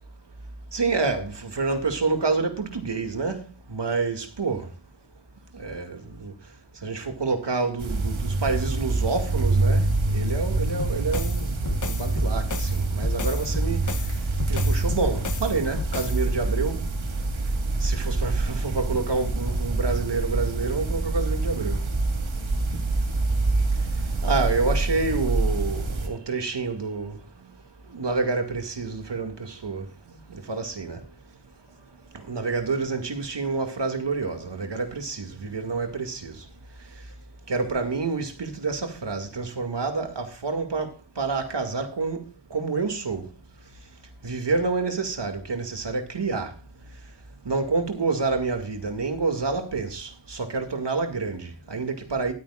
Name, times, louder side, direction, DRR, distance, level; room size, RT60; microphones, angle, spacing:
voice 1, 0.7-3.4 3.7-4.7 5.5-6.3 6.8-13.8 14.5-16.8 17.8-21.8 24.2-27.2 27.9-31.0 32.1-36.3 37.5-40.9 41.2-42.2 42.5-43.2 44.2-46.5 47.5-52.3, right 4 dB, 60° right, 2.2 m, -28 dB
sound 1, 7.8-26.1, right 2 dB, 75° right, 2.0 m, -26 dB
sound 2, 10.8-16.3, left 5 dB, 40° left, 0.8 m, -35 dB
20.0 x 9.1 x 2.4 m
wide cardioid pair, 85°, 48 cm